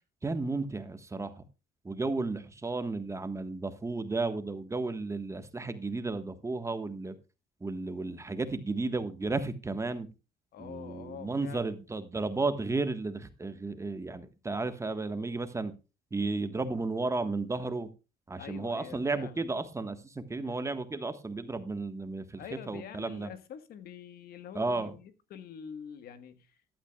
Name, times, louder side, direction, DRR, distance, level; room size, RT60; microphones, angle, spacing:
voice 1, 0.2-1.4 1.8-7.1 7.6-10.1 10.6-15.7 16.1-17.9 18.3-23.3 24.5-24.9, right 3 dB, 15° right, 1.4 m, -33 dB
voice 2, 10.5-11.6 18.4-19.4 20.4-20.7 22.4-26.5, left 8 dB, 65° left, 1.4 m, -46 dB
14.5 x 12.0 x 2.3 m
cardioid pair, 110°, 17 cm